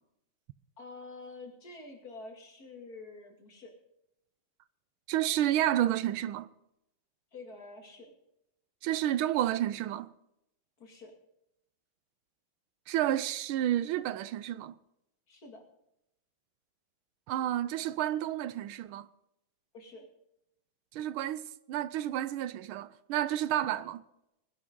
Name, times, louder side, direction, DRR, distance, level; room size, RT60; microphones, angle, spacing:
voice 1, 0.8-3.7 7.3-8.1 10.8-11.1 15.3-15.6 19.7-20.0 23.7-23.8, left 3 dB, 45° left, 2.8 m, -47 dB
voice 2, 5.1-6.5 8.8-10.1 12.9-14.7 17.3-19.1 20.9-24.0, right 12 dB, 80° right, 1.5 m, -30 dB
19.5 x 11.5 x 3.7 m
omnidirectional pair, 2.3 m